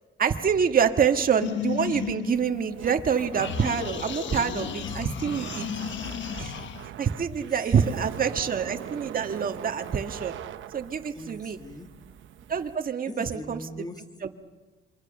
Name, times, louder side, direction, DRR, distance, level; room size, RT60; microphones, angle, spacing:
voice 1, 0.2-5.7 6.4-6.5 7.0-10.3 10.7-11.6 12.5-13.6 14.2-14.3, right 7 dB, 45° right, 6 dB, 1.7 m, -26 dB
sound 1, 1.4-3.0 3.4-6.9, left 8 dB, 70° left, 1.3 m, -34 dB
Laughter, 2.3-12.8, right 11 dB, 75° right, 1.1 m, -42 dB
voice 2, 4.8-5.2 5.9-6.1 7.5-8.0 11.2-12.0 13.1-14.0, left 1 dB, 20° left, 6 dB, 2.2 m, -42 dB
27.0 x 23.5 x 6.8 m, 1.3 s
cardioid pair, 90°, 20 cm